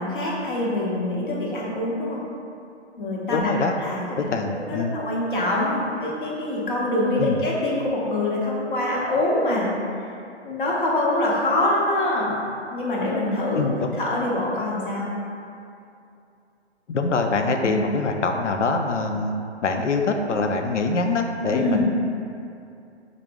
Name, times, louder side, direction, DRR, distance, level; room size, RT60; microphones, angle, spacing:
voice 1, 0.0-2.2 3.0-3.5 3.8-4.2 4.5-9.7 10.4-12.4 12.7-13.6 14.0-15.1 17.6-17.8 21.5-21.8, left 1 dB, 45° left, -4 dB, 0.9 m, -24 dB
voice 2, 3.3-3.7 4.2-5.0 7.2-7.4 13.5-14.0 16.9-19.3 19.6-21.8, left 3 dB, 85° left, 4 dB, 0.5 m, -24 dB
4.9 x 2.0 x 3.3 m, 2.6 s
figure-of-eight pair, 145°, 35 cm